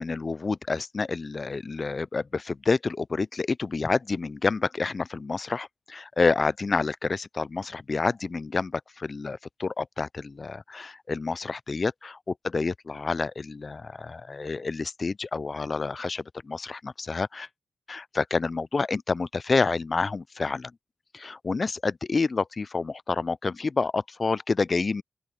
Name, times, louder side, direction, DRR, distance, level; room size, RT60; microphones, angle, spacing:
voice 1, 0.0-17.5 17.9-20.7 21.1-25.0, left 4 dB, 50° left, 0.4 m, -28 dB
open air
cardioid pair, 45°, 0 cm